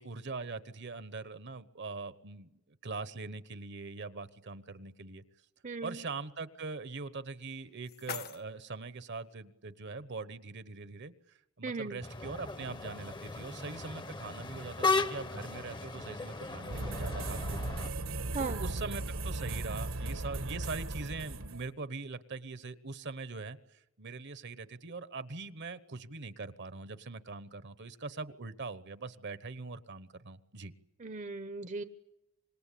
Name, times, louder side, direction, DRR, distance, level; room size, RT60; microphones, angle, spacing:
voice 1, 0.0-5.2 5.8-17.8 18.4-30.7, right 3 dB, 55° right, 15 dB, 1.1 m, -42 dB
voice 2, 5.6-6.0 11.6-12.0 18.3-18.6 31.0-31.8, right 3 dB, 35° right, 11 dB, 0.8 m, -37 dB
sound 1, 7.3-9.3, left 6 dB, 45° left, 1.0 m, -46 dB
sound 2, 12.0-17.9, left 3 dB, 20° left, 0.9 m, -36 dB
sound 3, 16.7-21.7, right 2 dB, 70° right, 1.4 m, -37 dB
26.0 x 21.0 x 8.5 m, 0.88 s
head